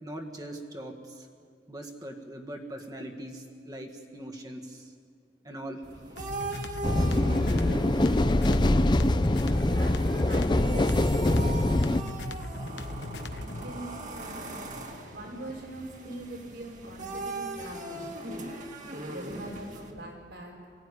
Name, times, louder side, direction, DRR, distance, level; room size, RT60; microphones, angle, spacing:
voice 1, 0.0-1.2 1.7-4.8 5.4-5.8, right 1 dB, 20° right, 2 dB, 1.7 m, -41 dB
sound 1, 5.8-19.9, right 2 dB, 45° right, 2.2 m, -39 dB
sound 2, 6.2-13.7, left 1 dB, 80° left, 1.2 m, -38 dB
sound 3, 6.8-12.0, left 1 dB, 25° left, 0.6 m, -24 dB
voice 2, 9.0-12.1 13.3-14.5 15.0-18.1 19.1-20.5, right 1 dB, 80° right, 0 dB, 5.8 m, -42 dB
24.0 x 16.5 x 9.8 m, 2.2 s
head